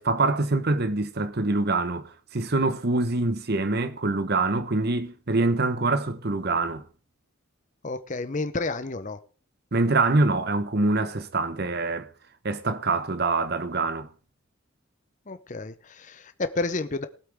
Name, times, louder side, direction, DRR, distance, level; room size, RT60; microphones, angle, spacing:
voice 1, 0.0-6.8 9.7-12.1 12.4-14.1, right 3 dB, 50° right, 1.0 m, -25 dB
voice 2, 7.8-9.2 15.3-17.1, left 3 dB, 35° left, 0.7 m, -30 dB
19.5 x 8.3 x 3.5 m
head